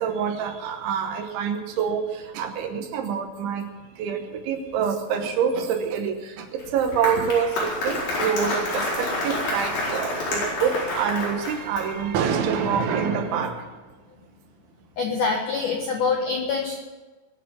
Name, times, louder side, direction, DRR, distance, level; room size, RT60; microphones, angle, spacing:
voice 1, 0.0-3.7 4.0-13.6, right 7 dB, 75° right, 6 dB, 3.2 m, -26 dB
Applause, 6.6-12.1, left 1 dB, 55° left, 6.4 m, -28 dB
voice 2, 15.0-16.8, left 4 dB, 70° left, 1 dB, 1.9 m, -25 dB
21.5 x 8.3 x 7.4 m, 1.2 s
omnidirectional pair, 5.9 m